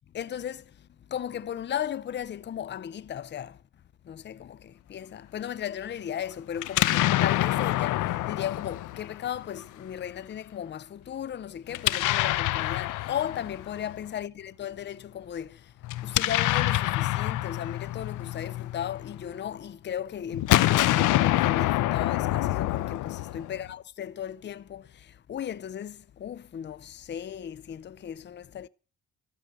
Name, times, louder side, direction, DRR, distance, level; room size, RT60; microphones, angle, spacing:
voice 1, 0.1-3.6 4.0-15.7 16.0-28.7, left 9 dB, 35° left, 0.6 m, -36 dB
Explosion, 6.6-9.6 11.7-13.9 15.8-19.3 20.3-23.7, left 16 dB, 90° left, 0.7 m, -26 dB
13.5 x 6.8 x 9.3 m
cardioid pair, 90°, 30 cm